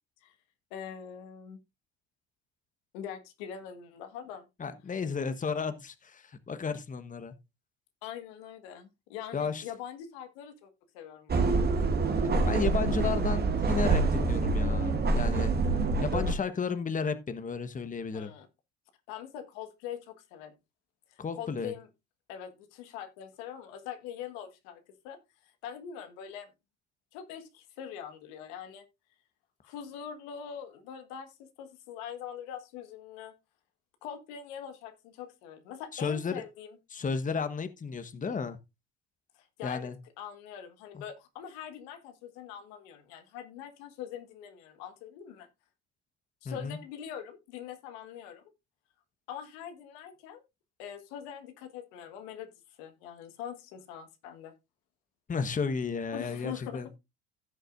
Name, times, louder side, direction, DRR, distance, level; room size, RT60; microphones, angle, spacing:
voice 1, 0.7-1.6 2.9-4.4 8.0-11.7 18.1-18.5 19.1-20.5 21.1-21.9 22.3-25.2 25.4-26.5 27.1-28.8 29.6-33.3 34.0-36.8 39.4-39.9 40.2-45.5 46.4-48.5 49.3-50.4 50.8-52.5 52.8-54.5 56.1-56.9, left 9 dB, 75° left, 1.6 m, -43 dB
voice 2, 4.6-7.3 9.3-9.6 12.5-15.6 16.0-18.3 21.2-21.7 35.9-36.4 36.9-38.6 39.6-40.0 40.9-41.0 46.4-46.8 55.3-56.9, left 5 dB, 25° left, 1.2 m, -33 dB
sound 1, 11.3-16.3, right 3 dB, 30° right, 1.5 m, -26 dB
16.0 x 6.5 x 2.5 m
hypercardioid pair, 65°, 32 cm